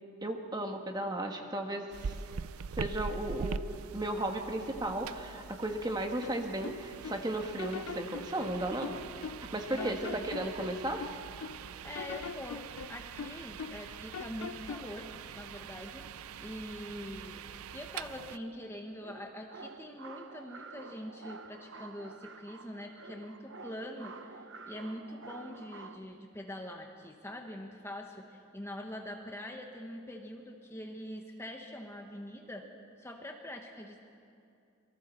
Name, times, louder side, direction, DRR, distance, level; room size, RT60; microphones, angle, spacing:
voice 1, 0.2-2.2 2.8-3.6 3.9-8.9 9.5-11.1, right 1 dB, 20° right, 3 dB, 1.5 m, -35 dB
sound 1, 1.9-18.4, right 6 dB, 85° right, 0.5 m, -44 dB
sound 2, 6.2-7.2 7.6-9.5 9.8-11.6 11.9-13.9 14.1-14.9, left 6 dB, 85° left, 0.4 m, -42 dB
voice 2, 9.7-10.2 11.8-16.1 16.4-17.5 17.7-32.7 33.0-34.0, equal, 10° left, 2 dB, 1.2 m, -44 dB
sound 3, 19.0-26.0, right 4 dB, 60° right, 1.0 m, -49 dB
27.5 x 23.0 x 4.5 m, 2.6 s
head